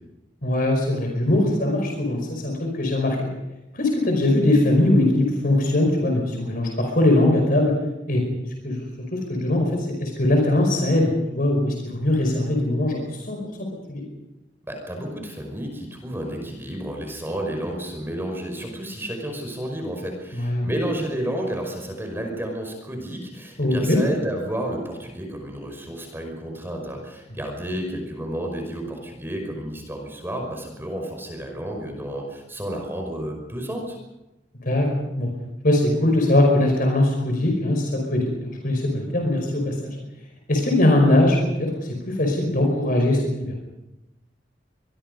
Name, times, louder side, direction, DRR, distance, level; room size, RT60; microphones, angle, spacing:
voice 1, 0.4-3.3 3.7-7.7 8.1-8.2 8.6-8.8 9.1-13.4 13.9-14.0 20.3-20.7 23.6-24.0 34.6-34.9 35.2-35.3 35.6-40.0 40.5-43.5, left 1 dB, 55° left, 2 dB, 5.2 m, -21 dB
voice 2, 14.7-34.0, right 1 dB, 15° right, 2 dB, 5.4 m, -31 dB
26.5 x 22.0 x 5.4 m, 0.95 s
head